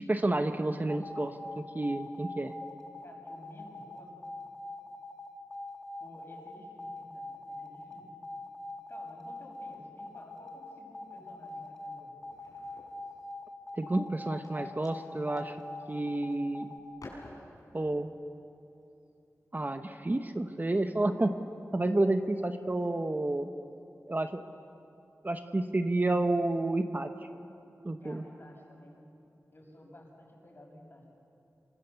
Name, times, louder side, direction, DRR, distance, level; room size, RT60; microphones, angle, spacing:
voice 1, 0.0-2.5 13.8-15.6 15.9-16.7 17.7-18.1 19.5-21.4 21.7-23.5 24.1-24.4 25.2-27.1 27.8-28.2, right 2 dB, 30° right, 7 dB, 1.0 m, -30 dB
sound 1, 0.9-16.8, left 2 dB, 10° left, 1.6 m, -43 dB
voice 2, 3.0-4.1 6.0-8.1 8.9-12.1 28.0-29.1 29.5-31.1, left 1 dB, 40° left, -1 dB, 6.8 m, -53 dB
sound 2, 9.4-10.1 10.5-10.9 11.2-13.6 14.1-16.5 16.8-17.9 18.9-19.1 20.3-20.5 21.3-21.5 22.1-22.2 22.5-23.5, left 2 dB, 85° left, 5.6 m, -55 dB
28.0 x 23.5 x 6.9 m, 2.7 s
wide cardioid pair, 80°, 6 cm